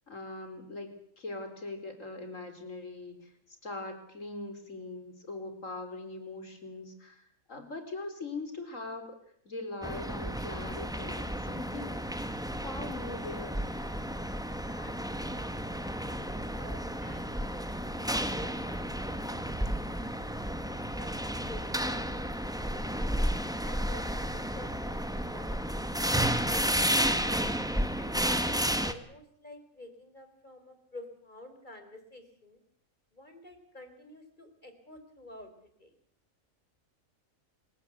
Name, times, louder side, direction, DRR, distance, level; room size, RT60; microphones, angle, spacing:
voice 1, 0.1-0.9 1.2-3.3 3.6-9.2 9.4-12.0 12.6-13.6, left 2 dB, 65° left, 7 dB, 4.5 m, -41 dB
sound 1, 9.8-28.9, equal, 5° right, 1.5 m, -32 dB
voice 2, 14.0-14.9 16.0-20.1 20.6-23.2 23.6-25.0 25.2-27.5 28.0-32.6 33.1-35.9, left 1 dB, 35° left, 7 dB, 4.1 m, -51 dB
27.5 x 16.5 x 8.1 m, 0.64 s
omnidirectional pair, 1.4 m